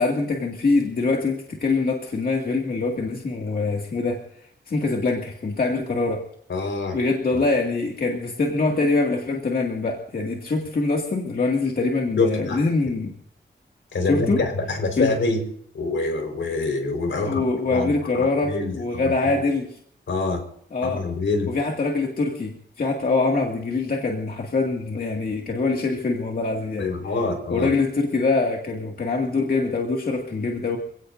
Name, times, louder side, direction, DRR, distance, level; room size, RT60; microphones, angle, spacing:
voice 1, 0.0-4.2 4.7-6.2 6.9-13.1 14.0-14.4 15.0-15.1 17.1-19.7 20.7-21.0 21.5-26.9 27.5-30.8, left 3 dB, 50° left, 0 dB, 2.2 m, -24 dB
voice 2, 6.5-7.0 7.3-7.4 12.2-12.6 13.9-15.4 15.7-17.4 17.7-18.8 19.0-19.4 20.1-20.4 20.8-21.5 26.8-27.7, left 3 dB, 75° left, 4 dB, 4.7 m, -25 dB
28.0 x 17.0 x 2.7 m, 0.67 s
wide cardioid pair, 175°, 20 cm